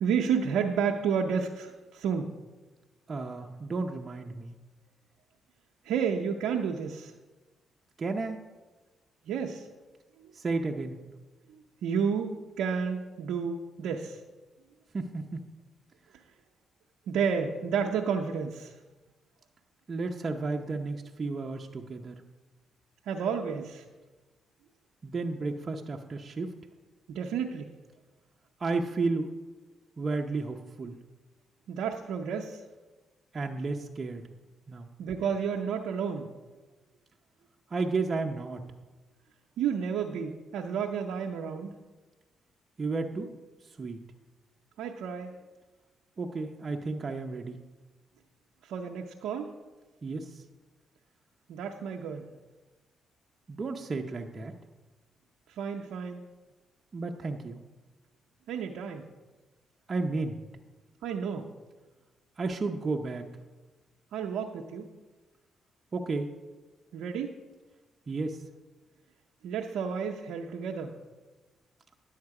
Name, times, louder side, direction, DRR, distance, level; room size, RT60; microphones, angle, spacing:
voice 1, 0.0-2.3 5.8-7.1 9.3-9.7 10.2-10.3 11.5-14.2 17.1-18.7 23.1-23.8 27.1-27.7 31.7-32.6 35.0-36.3 39.6-41.7 44.8-45.3 48.6-49.5 51.5-52.3 55.5-56.2 58.5-59.1 61.0-61.5 64.1-64.9 66.9-67.3 69.4-70.9, right 6 dB, 80° right, 2 dB, 0.6 m, -31 dB
voice 2, 3.1-4.5 8.0-8.4 10.3-11.0 14.9-15.4 19.9-22.2 25.0-26.5 28.6-29.3 30.0-30.9 33.3-34.2 34.7-34.9 37.7-38.6 42.8-43.3 43.8-44.0 46.2-47.6 50.0-50.4 53.5-54.5 56.9-57.6 59.9-60.4 62.4-63.2 65.9-66.3 68.1-68.4, right 3 dB, 40° right, 2 dB, 0.7 m, -32 dB
10.5 x 7.2 x 4.8 m, 1.2 s
supercardioid pair, 60°, 0 cm